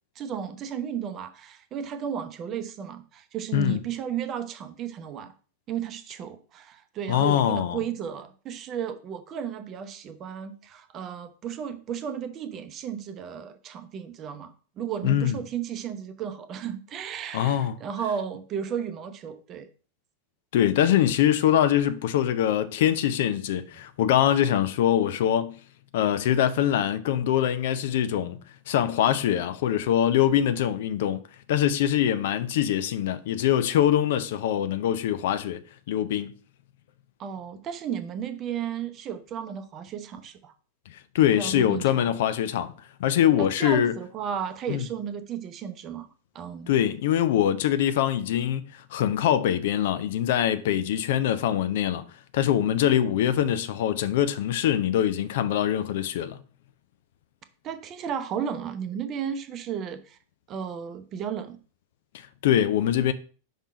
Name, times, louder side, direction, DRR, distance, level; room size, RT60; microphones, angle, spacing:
voice 1, 0.2-5.3 5.7-19.7 37.2-40.5 41.4-42.1 43.4-46.1 46.3-46.7 57.6-60.2 60.5-61.6, right 8 dB, 30° right, 0.7 m, -34 dB
voice 2, 7.1-7.8 15.0-15.4 17.3-17.7 20.5-25.5 25.9-28.4 28.7-31.2 31.5-35.6 35.9-36.3 41.1-42.7 43.0-44.0 44.7-44.9 46.7-52.0 52.3-56.4 62.1-63.1, left 10 dB, 55° left, 0.5 m, -23 dB
5.5 x 3.6 x 4.8 m
figure-of-eight pair, 90°, 0 cm